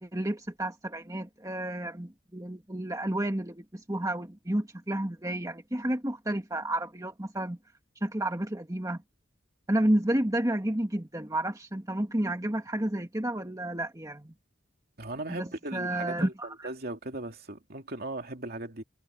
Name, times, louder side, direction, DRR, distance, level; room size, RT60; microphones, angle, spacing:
voice 1, 0.0-7.6 8.0-9.0 9.7-14.3 15.3-16.7, right 1 dB, 20° right, 1.8 m, -31 dB
voice 2, 15.0-16.3 16.6-18.8, right 2 dB, 55° right, 2.8 m, -37 dB
head